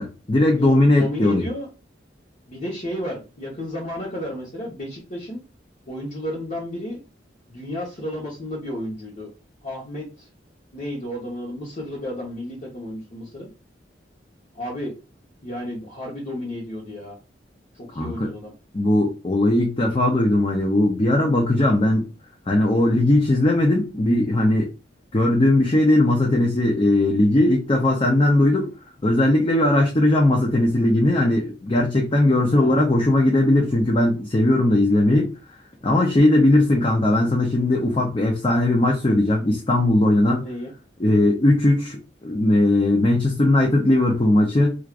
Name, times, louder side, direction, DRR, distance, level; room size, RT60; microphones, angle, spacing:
voice 1, 0.0-1.5 17.9-18.3 18.7-22.1 22.5-24.7 25.1-28.7 29.0-35.3 35.8-40.4 41.0-44.8, left 1 dB, 30° left, 0 dB, 0.6 m, -19 dB
voice 2, 0.6-1.7 2.5-5.4 5.9-7.0 7.5-9.3 9.6-10.3 10.7-13.5 14.5-14.9 15.4-17.2 17.7-18.5 32.5-32.8 40.4-40.7, left 1 dB, 45° left, -5 dB, 1.1 m, -32 dB
4.6 x 2.5 x 2.5 m, 0.31 s
head